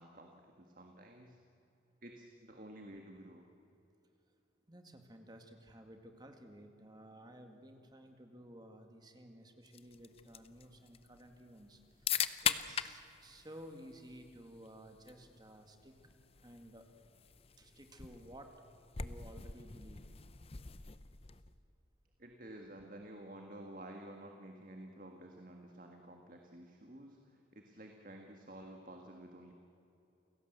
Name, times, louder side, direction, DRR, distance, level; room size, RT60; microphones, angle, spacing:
voice 1, 0.0-1.4 2.0-3.5 22.2-29.5, right 1 dB, 45° right, 3 dB, 1.7 m, -52 dB
voice 2, 4.7-12.2 12.4-15.9 16.4-16.9 17.6-18.5 19.0-20.1, equal, 20° right, 5 dB, 2.0 m, -54 dB
sound 1, 9.7-21.6, left 8 dB, 30° left, 0.7 m, -42 dB
29.0 x 17.0 x 8.1 m, 2.9 s
head